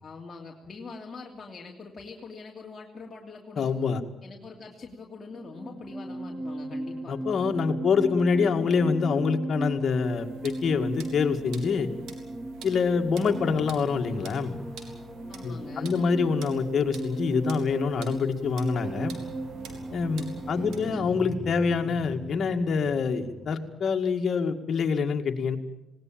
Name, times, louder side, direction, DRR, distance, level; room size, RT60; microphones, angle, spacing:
voice 1, 0.0-3.7 4.2-7.2 15.3-16.4 20.5-21.1, left 4 dB, 35° left, -1 dB, 2.8 m, -43 dB
voice 2, 3.6-4.0 7.1-11.9 12.6-14.6 15.4-19.1 19.9-25.6, left 5 dB, 55° left, 5 dB, 2.1 m, -26 dB
sound 1, 5.3-23.8, right 1 dB, 20° right, 2.1 m, -37 dB
sound 2, 10.0-20.9, right 5 dB, 85° right, 3.6 m, -49 dB
19.5 x 18.5 x 8.9 m, 0.97 s
cardioid pair, 90°, 0 cm